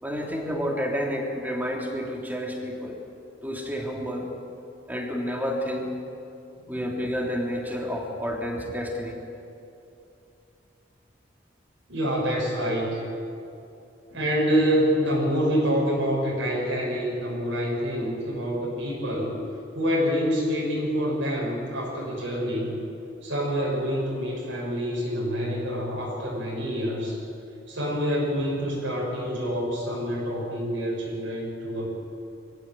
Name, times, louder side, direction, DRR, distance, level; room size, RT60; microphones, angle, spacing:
voice 1, 0.0-3.0 3.4-4.3 4.9-5.9 6.7-9.2, equal, 10° right, 0 dB, 3.1 m, -30 dB
voice 2, 11.9-13.1 14.1-19.3 19.7-22.8 23.2-27.2 27.7-31.9, equal, 75° right, -3 dB, 6.8 m, -26 dB
23.5 x 16.0 x 9.2 m, 2.7 s
head